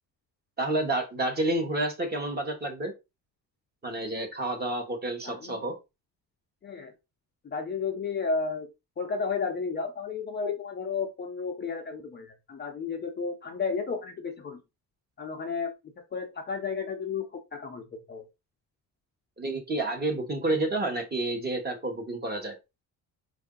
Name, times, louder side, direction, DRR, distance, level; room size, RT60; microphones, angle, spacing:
voice 1, 0.6-2.9 3.8-5.8 19.4-22.6, right 2 dB, 25° right, 3 dB, 1.1 m, -29 dB
voice 2, 5.2-5.6 6.6-6.9 7.4-8.7 9.0-14.6 15.2-15.7 16.1-17.8 18.1-18.2, left 5 dB, 25° left, 2 dB, 0.5 m, -32 dB
4.6 x 2.6 x 3.7 m, 0.25 s
cardioid pair, 175°, 39 cm